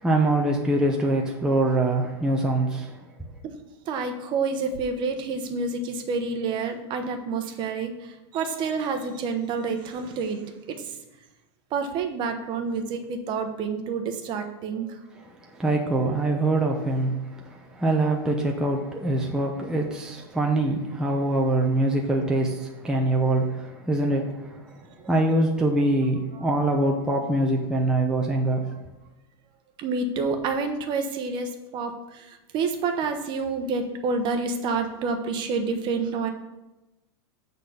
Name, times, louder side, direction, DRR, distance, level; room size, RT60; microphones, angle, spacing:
voice 1, 0.0-3.3 15.4-24.8 25.0-28.7, right 1 dB, 5° right, 0 dB, 0.7 m, -24 dB
voice 2, 3.4-11.0 11.7-15.0 26.3-26.7 29.8-36.3, right 4 dB, 35° right, 6 dB, 1.0 m, -29 dB
8.4 x 4.1 x 6.9 m, 1.0 s
supercardioid pair, 145°, 14 cm